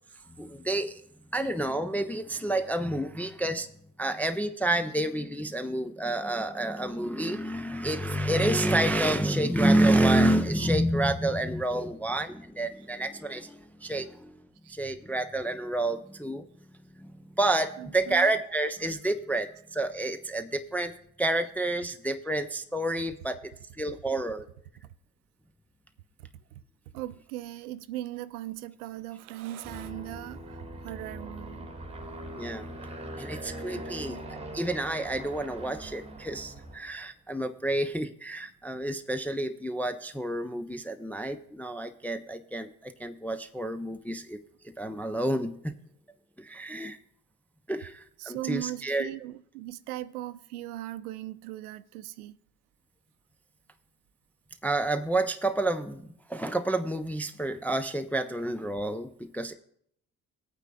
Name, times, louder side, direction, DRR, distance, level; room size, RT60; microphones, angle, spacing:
voice 1, 0.4-1.0 1.3-3.7 4.0-14.4 14.7-16.5 17.0-20.9 21.2-23.4 23.8-24.5 32.4-32.7 33.2-44.4 44.6-45.8 46.4-47.0 47.7-49.1 54.6-59.5, right 1 dB, 5° left, 0.3 m, -29 dB
voice 2, 17.8-18.3 26.9-31.7 33.7-34.2 48.2-52.4, right 14 dB, 70° right, 0.6 m, -39 dB
Aircraft, 29.6-37.0, right 1 dB, 15° right, 1.3 m, -41 dB
19.0 x 8.8 x 2.3 m
figure-of-eight pair, 50°, 46 cm